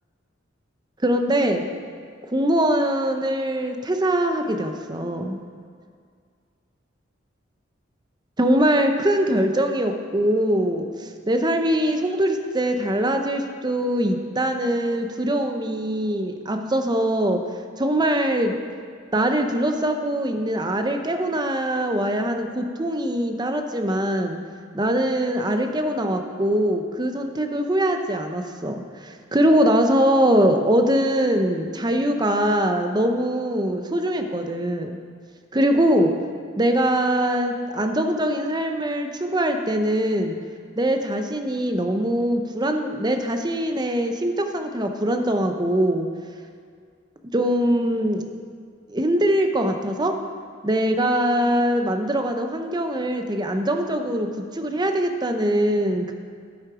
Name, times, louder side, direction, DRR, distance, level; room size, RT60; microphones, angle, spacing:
voice 1, 1.0-1.7 2.3-5.4 8.4-17.4 17.8-18.5 19.1-24.4 24.7-34.9 35.5-36.1 36.6-40.4 40.8-46.1 47.3-48.2 48.9-50.1 50.6-54.3 54.5-56.1, right 1 dB, 20° right, 5 dB, 0.8 m, -22 dB
9.7 x 8.6 x 4.9 m, 2.1 s
head